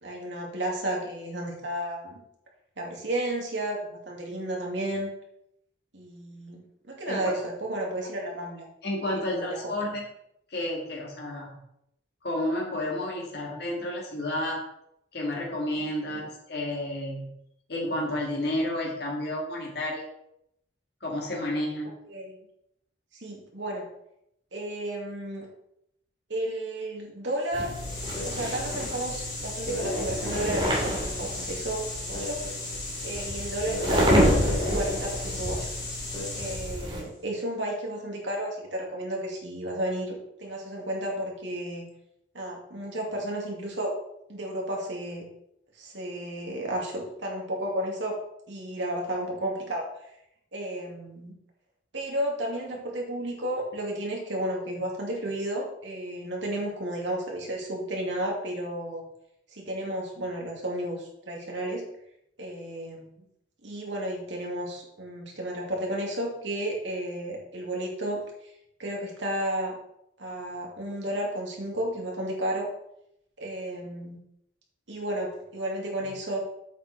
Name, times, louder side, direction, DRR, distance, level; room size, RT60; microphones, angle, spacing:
voice 1, 0.0-2.2 2.8-5.1 5.9-8.7 9.3-9.6 22.1-22.4 23.1-23.9 24.5-25.5 26.3-27.7 28.2-32.4 33.0-35.7 36.3-41.9 42.3-43.9 44.3-45.3 45.8-48.2 48.5-49.9 50.5-51.3 51.9-59.0 59.5-61.8 62.4-63.2 63.6-68.2 68.8-69.8 70.2-72.7 73.4-74.2 74.9-76.4, right 1 dB, 70° right, -1 dB, 2.5 m, -32 dB
voice 2, 7.1-7.4 8.8-10.0 10.5-11.6 12.2-14.6 15.1-17.3 17.7-20.1 21.0-21.9, left 1 dB, 55° left, -2 dB, 1.9 m, -31 dB
sound 1, 27.4-37.0, left 2 dB, 25° left, 3.9 m, -35 dB
sound 2, 27.5-37.0, equal, 25° right, 2.5 m, -29 dB
8.2 x 6.6 x 4.3 m, 0.78 s
head